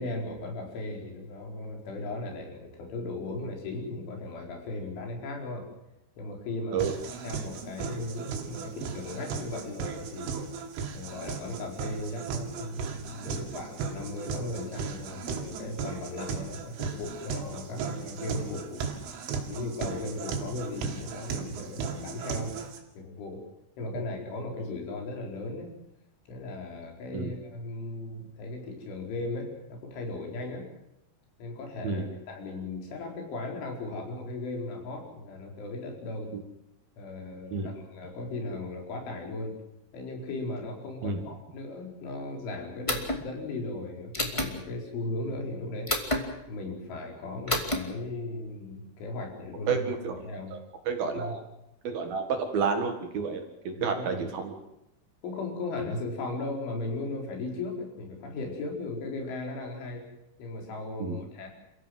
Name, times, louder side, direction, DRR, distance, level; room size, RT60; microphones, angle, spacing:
voice 1, 0.0-5.7 6.2-10.4 10.9-18.8 19.5-22.5 23.0-23.4 23.8-25.7 26.3-30.7 31.4-36.3 37.0-39.6 39.9-45.9 46.5-49.9 50.2-50.5 51.1-51.3 53.7-54.3 55.2-60.1 60.4-61.5, left 2 dB, 75° left, 1 dB, 6.8 m, -37 dB
sound 1, 6.8-22.8, right 5 dB, 85° right, 5.1 m, -36 dB
sound 2, 42.9-43.2 44.1-44.5 45.9-46.2 47.5-47.8, left 1 dB, 20° left, 0.7 m, -28 dB
voice 2, 49.7-50.2 50.5-50.6 50.9-51.4 51.8-54.6 61.0-61.2, right 5 dB, 60° right, 5 dB, 3.2 m, -30 dB
28.5 x 15.5 x 7.7 m, 0.85 s
omnidirectional pair, 5.6 m